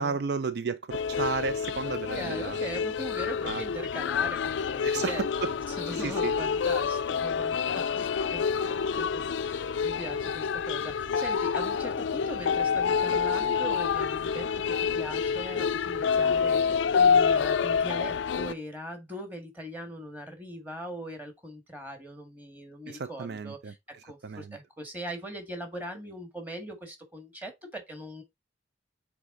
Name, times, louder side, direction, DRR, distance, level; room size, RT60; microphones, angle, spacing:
voice 1, 0.0-2.6 3.5-3.6 4.8-5.5 6.0-6.4 22.9-23.7 24.2-24.6, right 4 dB, 55° right, 0.4 m, -33 dB
sound 1, 0.9-18.5, left 6 dB, 75° left, 0.4 m, -28 dB
voice 2, 1.8-23.8 24.1-28.2, equal, 10° right, 1.8 m, -40 dB
8.1 x 3.6 x 3.8 m
head